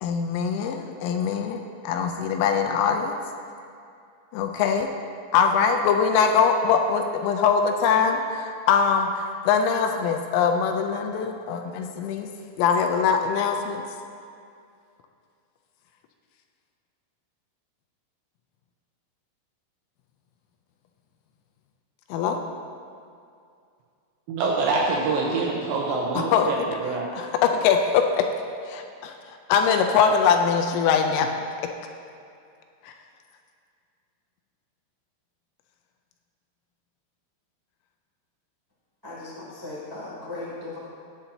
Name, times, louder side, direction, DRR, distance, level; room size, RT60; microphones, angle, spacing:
voice 1, 0.0-3.2 4.3-4.9 5.3-12.3 12.6-13.8 22.1-22.4 26.2-26.5 27.1-28.2 28.7-29.1 29.5-31.3, left 6 dB, 85° left, 4 dB, 3.2 m, -22 dB
voice 2, 24.3-27.1, right 3 dB, 80° right, -2 dB, 2.7 m, -25 dB
voice 3, 39.0-40.8, left 2 dB, 20° right, -8 dB, 0.5 m, -37 dB
17.0 x 8.4 x 2.8 m, 2.4 s
omnidirectional pair, 6.0 m